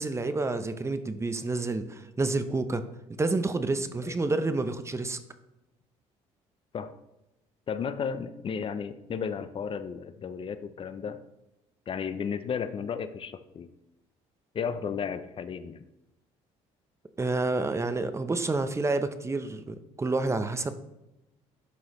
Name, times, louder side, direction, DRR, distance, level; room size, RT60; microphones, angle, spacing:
voice 1, 0.0-2.8 3.2-5.2 17.2-20.7, right 3 dB, 20° right, 10 dB, 0.6 m, -29 dB
voice 2, 7.7-11.2 11.9-13.7 14.5-15.9, left 6 dB, 40° left, 12 dB, 0.5 m, -34 dB
11.5 x 3.8 x 3.0 m, 0.92 s
supercardioid pair, 75°, 14 cm